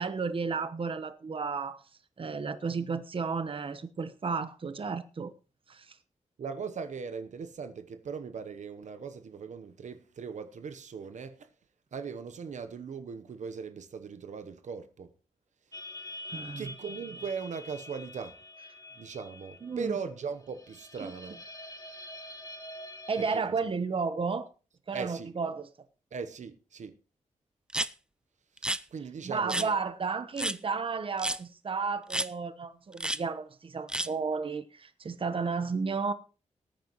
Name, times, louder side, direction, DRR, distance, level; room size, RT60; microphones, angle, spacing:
voice 1, 0.0-1.8 2.2-5.3 5.7-6.0 16.3-16.7 19.6-19.9 21.0-21.1 23.1-24.5 24.9-25.7 29.2-36.1, right 5 dB, 45° right, 1.0 m, -33 dB
voice 2, 6.4-11.5 11.9-15.1 16.6-18.4 18.9-21.4 23.2-23.3 24.9-25.3 26.1-27.0 28.5-29.8, right 5 dB, 70° right, 0.9 m, -39 dB
sound 1, 15.7-23.4, left 1 dB, 30° left, 2.1 m, -46 dB
sound 2, 27.7-27.9 28.6-28.8 29.5-29.7 30.4-30.6 31.2-31.4 32.1-32.3 33.0-33.2 33.9-34.1, right 1 dB, 5° right, 0.5 m, -30 dB
18.5 x 9.4 x 3.1 m
wide cardioid pair, 100°, 13 cm